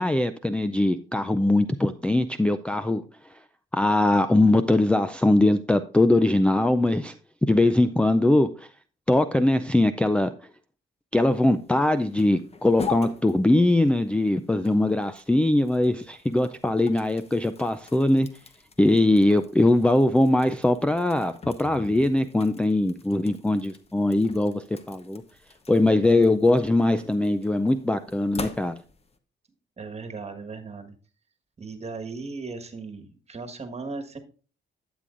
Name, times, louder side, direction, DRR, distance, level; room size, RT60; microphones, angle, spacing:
voice 1, 0.0-3.0 3.7-7.1 7.5-8.7 9.1-10.3 11.1-18.3 18.8-25.2 25.7-28.8, left 1 dB, 5° left, 11 dB, 0.4 m, -21 dB
sound 1, 11.2-29.2, left 5 dB, 30° left, 1.0 m, -43 dB
voice 2, 29.8-30.9 31.6-34.2, right 4 dB, 30° right, 6 dB, 1.5 m, -37 dB
12.0 x 7.7 x 2.5 m, 0.38 s
cardioid pair, 90°, 20 cm